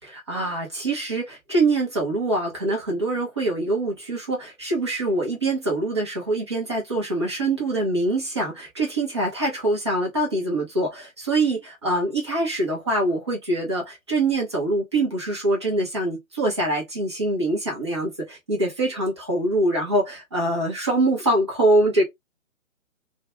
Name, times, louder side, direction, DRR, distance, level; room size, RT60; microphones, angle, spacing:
voice 1, 0.0-22.0, right 2 dB, 20° right, 0.6 m, -24 dB
2.5 x 2.1 x 2.6 m
figure-of-eight pair, 140°, 41 cm